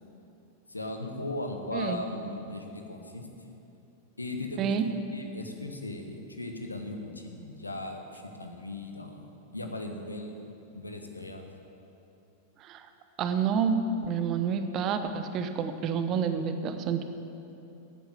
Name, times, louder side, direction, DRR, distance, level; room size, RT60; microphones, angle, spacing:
voice 1, 0.7-3.3 4.2-4.8 5.1-10.4 10.7-11.4, left 2 dB, 80° left, 4 dB, 1.4 m, -38 dB
voice 2, 1.7-2.0 4.6-4.9 12.6-12.9 13.2-17.0, right 6 dB, 35° right, 9 dB, 1.0 m, -29 dB
14.0 x 9.1 x 8.2 m, 2.9 s
figure-of-eight pair, 90°, 0 cm